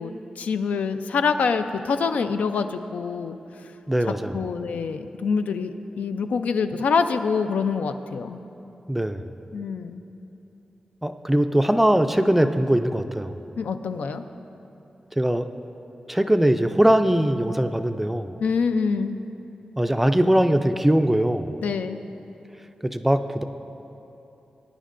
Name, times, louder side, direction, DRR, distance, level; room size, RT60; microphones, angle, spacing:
voice 1, 0.0-3.4 4.1-8.4 9.5-10.0 13.6-14.2 18.4-19.2 21.6-22.0, left 5 dB, 90° left, 9 dB, 0.4 m, -25 dB
voice 2, 3.9-4.4 8.9-9.3 11.0-13.4 15.2-15.5 16.1-18.4 19.8-21.5 22.8-23.4, right 1 dB, 10° right, 8 dB, 0.3 m, -21 dB
19.5 x 10.0 x 2.5 m, 2.9 s
wide cardioid pair, 145°, 2 cm